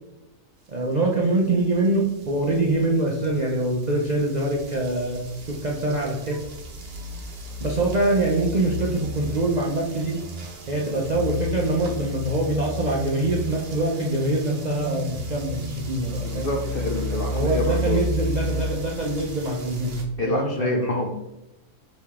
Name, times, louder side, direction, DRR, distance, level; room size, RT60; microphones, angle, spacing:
voice 1, 0.7-6.4 7.6-10.2 10.7-16.5 17.3-20.0 20.2-20.8, right 2 dB, 90° right, -1 dB, 0.3 m, -24 dB
sound 1, 1.5-20.0, left 1 dB, 50° right, 0.9 m, -32 dB
voice 2, 16.2-18.0 20.2-21.1, left 2 dB, 70° left, 0 dB, 0.5 m, -27 dB
4.7 x 3.2 x 3.5 m, 0.92 s
omnidirectional pair, 1.6 m